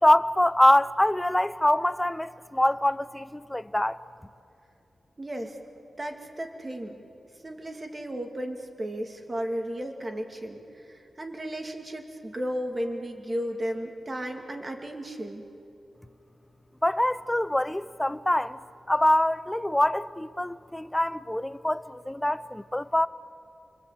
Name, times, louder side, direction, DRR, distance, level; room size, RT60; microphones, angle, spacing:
voice 1, 0.0-4.0 16.8-18.6 18.9-23.1, left 1 dB, 10° left, 0.6 m, -24 dB
voice 2, 5.2-5.6 6.0-7.0 7.4-15.4, equal, 25° right, 2.4 m, -34 dB
30.0 x 24.0 x 8.3 m
wide cardioid pair, 155°, 0 cm